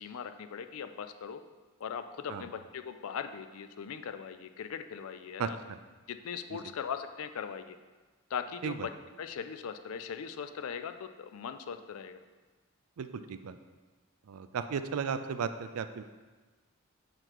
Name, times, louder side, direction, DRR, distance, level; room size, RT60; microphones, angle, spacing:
voice 1, 0.0-1.4 1.8-5.6 6.1-7.8 8.3-8.9 9.2-12.2, left 7 dB, 70° left, 9 dB, 0.4 m, -39 dB
voice 2, 5.4-5.8 6.5-6.6 8.6-8.9 13.0-13.6 14.3-16.0, right 6 dB, 80° right, 10 dB, 0.4 m, -35 dB
6.5 x 3.9 x 4.6 m, 1.3 s
head